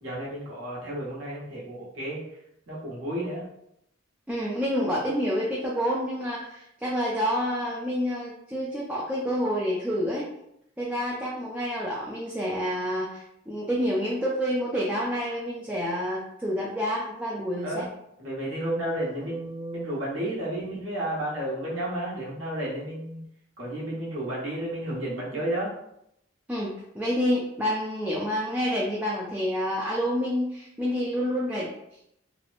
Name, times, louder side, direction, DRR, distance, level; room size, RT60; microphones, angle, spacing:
voice 1, 0.0-2.2 2.7-3.4 17.6-17.9 18.2-23.2 23.6-25.7, right 1 dB, 75° right, -6 dB, 0.9 m, -32 dB
voice 2, 4.3-10.3 10.8-17.8 26.5-31.7, equal, 10° right, -5 dB, 0.3 m, -28 dB
2.8 x 2.0 x 2.4 m, 0.76 s
head